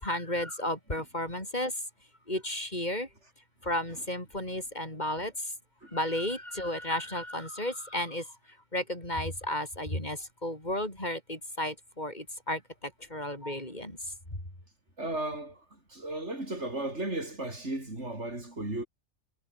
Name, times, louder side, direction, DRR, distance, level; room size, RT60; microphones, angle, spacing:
voice 1, 0.0-1.7 2.3-3.1 3.7-5.3 5.9-8.2 8.7-12.6 13.1-14.0, left 1 dB, 40° left, 8.2 m, -33 dB
voice 2, 15.0-15.6 15.9-18.9, right 2 dB, 75° right, 6.7 m, -35 dB
omnidirectional pair, 1.2 m